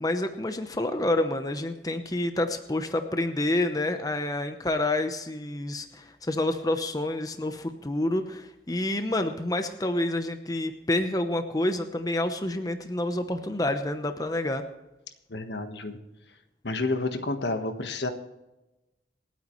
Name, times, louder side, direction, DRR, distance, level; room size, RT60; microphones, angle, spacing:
voice 1, 0.0-14.6, left 1 dB, 20° left, 7 dB, 0.8 m, -28 dB
voice 2, 15.3-16.0 16.6-18.1, left 2 dB, 75° left, 7 dB, 1.4 m, -30 dB
27.0 x 9.3 x 3.2 m, 1.0 s
head